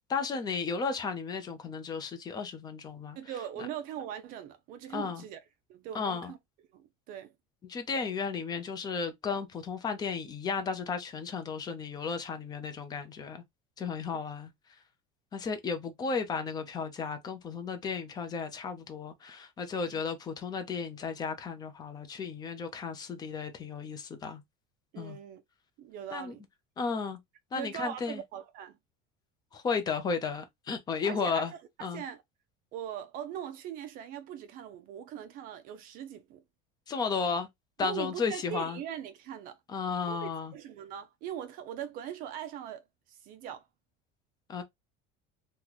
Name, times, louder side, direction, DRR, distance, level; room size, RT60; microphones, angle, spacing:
voice 1, 0.1-3.2 4.9-5.2 5.9-6.3 7.7-13.4 13.8-14.5 15.3-24.4 25.0-25.2 26.1-26.3 26.8-27.2 27.5-28.2 29.5-31.5 31.8-32.0 36.9-37.5 37.8-38.8 39.7-40.5 44.5-44.6, left 5 dB, 20° left, 0.5 m, -34 dB
voice 2, 3.2-5.4 5.7-6.4 6.7-7.3 14.1-14.2 19.8-20.0 24.9-25.4 25.8-26.4 27.6-28.8 31.0-31.5 31.8-32.2 32.7-36.4 37.8-39.6 40.0-43.6, right 10 dB, 45° right, 0.5 m, -41 dB
3.0 x 2.1 x 3.8 m
cardioid pair, 170°, 21 cm